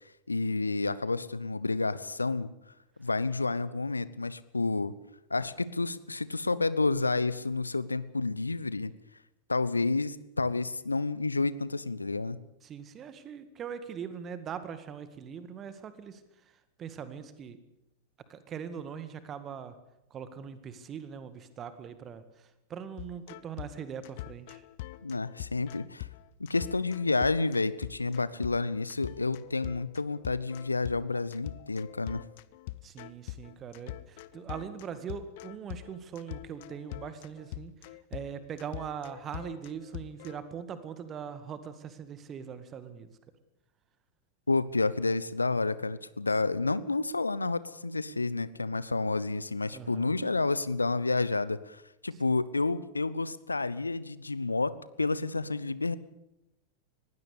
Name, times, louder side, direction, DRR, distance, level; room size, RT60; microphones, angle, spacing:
voice 1, 0.3-2.5 3.0-4.9 5.3-8.9 9.5-12.4 25.0-26.1 26.4-32.2 44.5-56.0, left 3 dB, 80° left, 17 dB, 0.8 m, -30 dB
voice 2, 12.6-16.2 16.8-17.6 18.3-19.8 20.1-24.6 32.8-43.1 49.7-50.2, right 7 dB, 25° right, 12 dB, 1.9 m, -41 dB
sound 1, 23.0-40.4, left 17 dB, 50° left, 0.8 m, -43 dB
20.5 x 16.0 x 8.3 m, 0.89 s
figure-of-eight pair, 90°, 0 cm